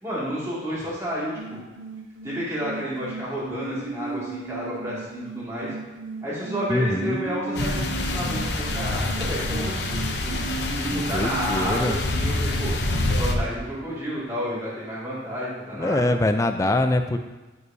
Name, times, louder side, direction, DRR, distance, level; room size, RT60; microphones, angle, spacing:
voice 1, 0.0-1.6 2.2-5.7 6.2-10.4 10.8-12.8 13.0-16.1, equal, 15° right, -9 dB, 2.2 m, -31 dB
sound 1, 1.4-13.4, right 4 dB, 80° right, 0.5 m, -36 dB
voice 2, 6.7-7.2 10.9-12.0 15.7-17.2, left 2 dB, 15° left, 7 dB, 0.3 m, -23 dB
sound 2, 7.6-13.4, left 2 dB, 65° left, 0.7 m, -26 dB
9.4 x 6.3 x 2.7 m, 1.2 s
head